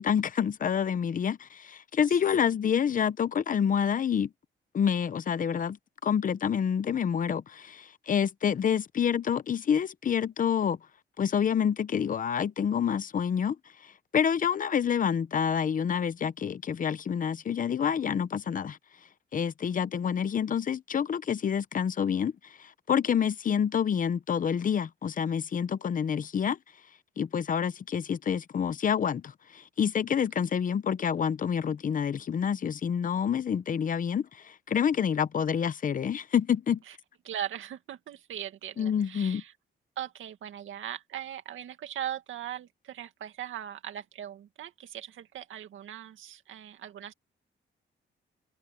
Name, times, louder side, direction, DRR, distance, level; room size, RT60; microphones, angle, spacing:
voice 1, 0.0-4.3 4.7-5.8 6.0-10.8 11.2-13.6 14.1-18.8 19.3-22.3 22.6-26.6 27.2-36.8 38.8-39.4, left 8 dB, 45° left, 0.8 m, -28 dB
voice 2, 37.2-39.5 40.0-47.1, right 10 dB, 90° right, 2.1 m, -39 dB
open air
cardioid pair, 140°, 20 cm